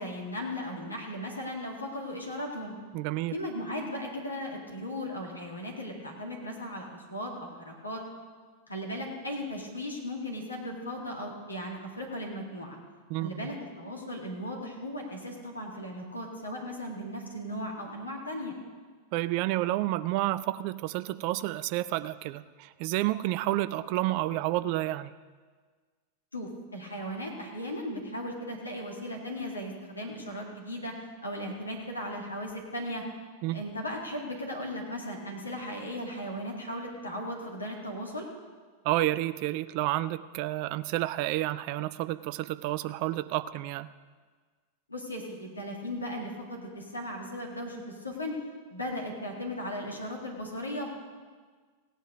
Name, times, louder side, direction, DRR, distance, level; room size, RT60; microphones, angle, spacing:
voice 1, 0.0-2.7 3.3-8.0 8.7-12.8 13.2-18.5 26.3-30.9 31.2-33.0 33.5-38.3 44.9-48.4 48.7-50.9, equal, 80° left, 0 dB, 2.2 m, -37 dB
voice 2, 2.9-3.3 13.1-13.5 19.1-25.1 33.4-33.6 38.8-43.9, right 16 dB, 45° right, 15 dB, 0.5 m, -30 dB
16.5 x 9.1 x 5.2 m, 1.5 s
figure-of-eight pair, 90°, 0 cm